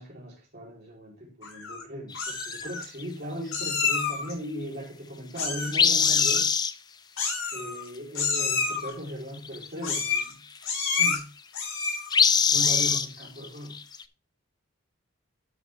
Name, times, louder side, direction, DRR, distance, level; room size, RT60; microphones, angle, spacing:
voice 1, 0.0-6.5 7.5-10.5 11.0-11.3 12.5-13.8, equal, 45° right, 3.8 m, -38 dB
Meow, 1.4-1.8 2.1-2.8 3.5-4.3 5.3-5.8 6.0-6.4 7.2-7.9 8.1-8.9 9.8-10.3 10.6-11.2 11.5-12.1 12.5-13.0, left 5 dB, 70° left, 4.1 m, -29 dB
sound 1, 2.1-2.6 3.0-3.1 5.7-6.7 9.1-9.2 9.4-9.7 9.9-10.2 12.1-14.0, left 6 dB, 20° left, 0.4 m, -22 dB
12.0 x 5.9 x 3.4 m
head